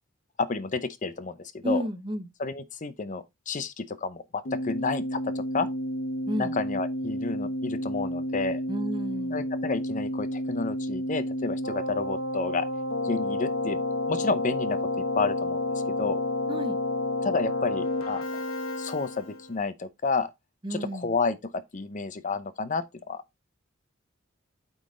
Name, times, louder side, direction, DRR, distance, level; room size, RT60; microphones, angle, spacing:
voice 1, 0.4-1.8 2.4-5.7 6.4-8.6 9.3-12.7 13.0-13.8 14.1-15.6 16.0-16.2 17.2-18.2 18.8-20.3 20.7-21.4 21.7-23.2, left 4 dB, 40° left, 0.7 m, -30 dB
voice 2, 1.6-2.3 6.3-6.5 8.7-9.4 16.5-16.8 20.6-21.1, equal, 25° right, 1.0 m, -31 dB
Keyboard (musical), 4.4-19.5, left 1 dB, 90° left, 1.2 m, -30 dB
8.8 x 4.0 x 3.7 m
head